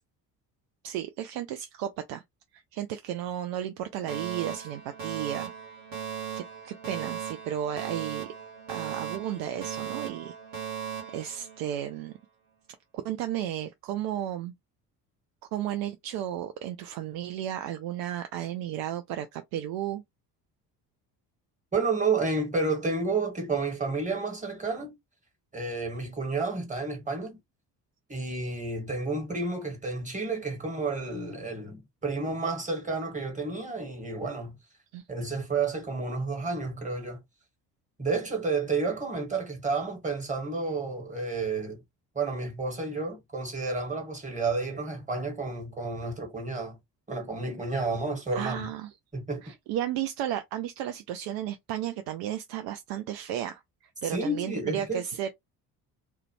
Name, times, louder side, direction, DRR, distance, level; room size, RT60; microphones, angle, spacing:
voice 1, 0.8-2.2 2.5-5.5 6.4-8.3 8.7-10.3 11.1-12.1 13.0-14.5 15.5-20.0 34.9-35.0 48.3-48.9 49.4-53.6 54.0-55.3, right 11 dB, 50° right, 0.5 m, -33 dB
Alarm, 4.1-12.1, right 8 dB, 75° right, 1.3 m, -38 dB
voice 2, 21.7-24.9 25.5-27.4 28.1-34.6 35.1-37.2 38.0-41.8 42.1-46.8 47.1-48.7 49.1-49.4 54.0-55.0, right 3 dB, 15° right, 1.4 m, -31 dB
2.4 x 2.1 x 3.0 m
figure-of-eight pair, 50°, 50 cm